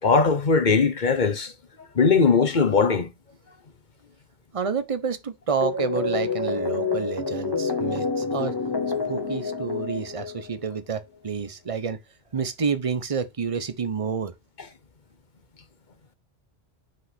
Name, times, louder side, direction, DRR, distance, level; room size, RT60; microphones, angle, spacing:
voice 1, 0.0-1.5 1.9-3.1, left 5 dB, 45° left, 1.1 m, -20 dB
voice 2, 4.5-8.5 9.1-12.0 12.3-14.3, right 6 dB, 35° right, 0.9 m, -29 dB
sound 1, 5.6-10.8, left 4 dB, 25° left, 0.9 m, -28 dB
6.1 x 5.4 x 3.5 m
omnidirectional pair, 1.1 m